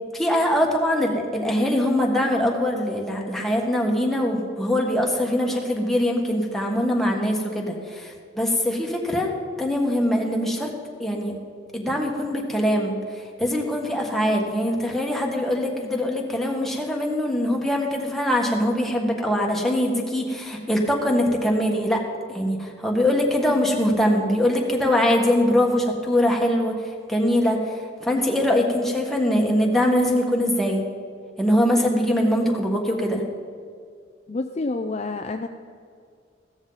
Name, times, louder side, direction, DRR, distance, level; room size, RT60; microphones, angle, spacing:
voice 1, 0.1-10.7 11.0-11.3 11.7-22.0 22.3-26.7 27.1-27.7 28.0-30.8 31.4-33.2, left 1 dB, ahead, -1 dB, 1.5 m, -22 dB
voice 2, 34.3-35.5, left 3 dB, 35° left, 6 dB, 0.4 m, -28 dB
15.5 x 13.5 x 4.0 m, 2.2 s
head